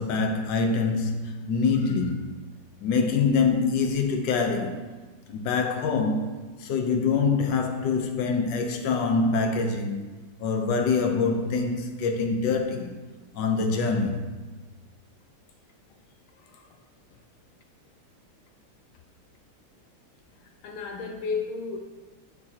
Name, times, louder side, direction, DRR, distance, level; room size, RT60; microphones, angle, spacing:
voice 1, 0.0-2.4 2.8-4.9 5.3-6.3 6.6-10.0 10.4-13.0 13.3-14.2, left 4 dB, 65° left, 1.4 m, -25 dB
voice 2, 20.4-21.8, left 5 dB, 85° left, 1.5 m, -34 dB
13.0 x 4.5 x 2.8 m
omnidirectional pair, 2.2 m